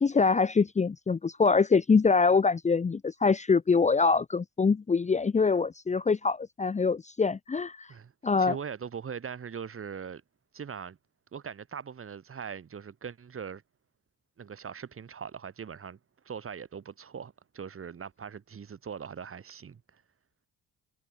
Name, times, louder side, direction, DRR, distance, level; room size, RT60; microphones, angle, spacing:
voice 1, 0.0-7.9 8.2-8.6, left 4 dB, 25° left, 0.8 m, -24 dB
voice 2, 8.4-10.2 10.5-11.0 11.3-13.6 14.4-16.0 16.2-20.0, right 7 dB, 45° right, 5.5 m, -41 dB
cardioid pair, 90°, 30 cm